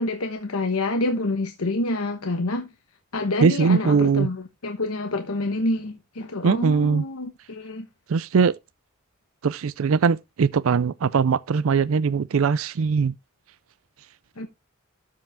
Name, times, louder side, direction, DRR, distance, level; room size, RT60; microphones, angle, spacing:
voice 1, 0.0-2.7 3.1-7.9 14.4-14.5, left 2 dB, 90° left, 1.2 m, -27 dB
voice 2, 3.4-4.3 6.4-7.0 8.1-8.5 9.4-13.1, right 5 dB, 70° right, 0.4 m, -21 dB
13.0 x 4.8 x 3.5 m
head